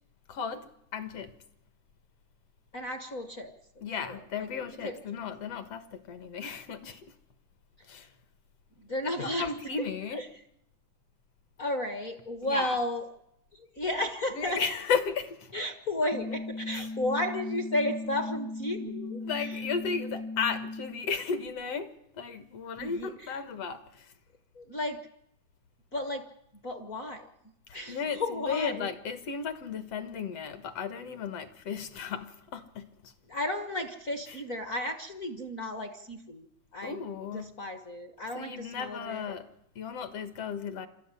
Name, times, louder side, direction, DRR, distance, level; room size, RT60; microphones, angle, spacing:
voice 1, 0.3-1.3 3.8-7.1 7.9-8.1 9.2-10.2 12.4-12.8 14.3-15.5 16.7-16.9 19.2-21.9 22.1-24.1 27.7-33.1 34.3-34.4 36.8-37.6 38.4-39.5 39.8-40.9, left 6 dB, 60° left, 2.3 m, -35 dB
voice 2, 2.7-3.5 4.0-4.2 4.8-5.0 8.8-9.5 10.1-10.2 11.6-13.0 13.5-14.6 15.5-19.2 22.8-23.1 24.5-25.0 25.9-26.2 26.6-27.3 27.7-28.9 33.3-36.5 36.7-37.0 37.3-39.3, left 1 dB, 45° left, 1.1 m, -33 dB
sound 1, 16.1-21.1, left 3 dB, 80° left, 0.9 m, -37 dB
28.0 x 13.5 x 9.8 m
omnidirectional pair, 3.4 m